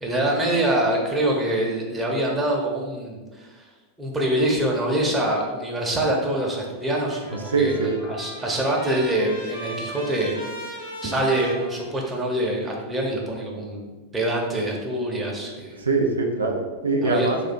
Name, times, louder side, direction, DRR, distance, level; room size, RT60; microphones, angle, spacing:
voice 1, 0.0-3.6 4.0-10.4 11.0-15.8 17.0-17.4, right 1 dB, 10° right, -2 dB, 0.8 m, -25 dB
Trumpet, 6.8-12.4, equal, 80° left, 1.1 m, -38 dB
voice 2, 7.5-8.0 15.8-17.4, right 3 dB, 75° right, 2 dB, 0.4 m, -22 dB
3.3 x 2.6 x 4.2 m, 1.3 s
figure-of-eight pair, 90°, 0 cm